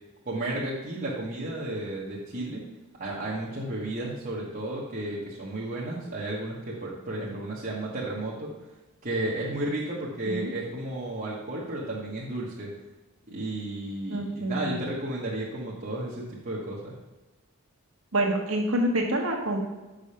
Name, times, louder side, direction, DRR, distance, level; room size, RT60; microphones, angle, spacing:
voice 1, 0.2-2.6 3.0-8.5 9.0-12.7 13.3-17.0, right 1 dB, 40° right, -6 dB, 1.1 m, -33 dB
voice 2, 14.1-14.8 18.1-19.6, right 1 dB, 85° right, 2 dB, 1.4 m, -27 dB
6.2 x 5.0 x 5.6 m, 1.2 s
head